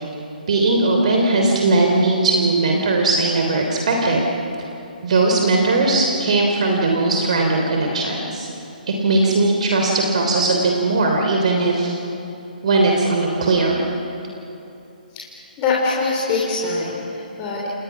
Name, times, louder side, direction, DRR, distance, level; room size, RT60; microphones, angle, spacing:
voice 1, 0.5-4.2 5.0-8.5 9.0-12.0 12.6-13.8, right 2 dB, 50° right, 1 dB, 3.2 m, -18 dB
voice 2, 15.6-17.7, left 3 dB, 20° left, -3 dB, 3.4 m, -23 dB
30.0 x 28.5 x 6.0 m, 2.9 s
figure-of-eight pair, 135°, 5 cm